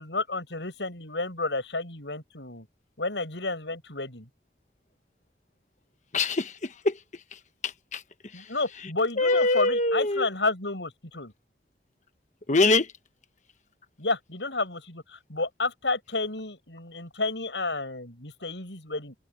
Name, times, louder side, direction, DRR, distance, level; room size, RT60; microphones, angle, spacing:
voice 1, 0.0-2.7 3.0-4.3 8.3-11.3 14.0-19.1, left 3 dB, 85° left, 7.9 m, -31 dB
voice 2, 6.1-6.9 7.9-8.0 9.2-10.3 12.5-12.9, left 2 dB, 45° left, 1.3 m, -23 dB
head